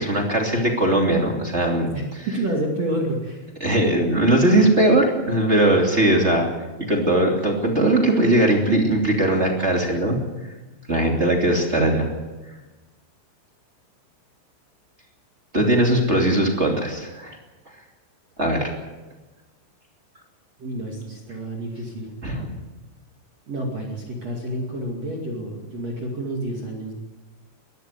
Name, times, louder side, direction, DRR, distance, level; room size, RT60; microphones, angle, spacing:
voice 1, 0.0-1.9 3.6-6.5 6.9-10.2 10.9-12.1 15.5-17.4 18.4-18.7 22.2-22.5, right 1 dB, 25° right, 1 dB, 1.7 m, -19 dB
voice 2, 1.9-3.5 20.6-22.1 23.5-26.9, right 1 dB, 40° right, -1 dB, 2.8 m, -29 dB
21.5 x 13.5 x 9.5 m, 1.2 s
omnidirectional pair, 5.9 m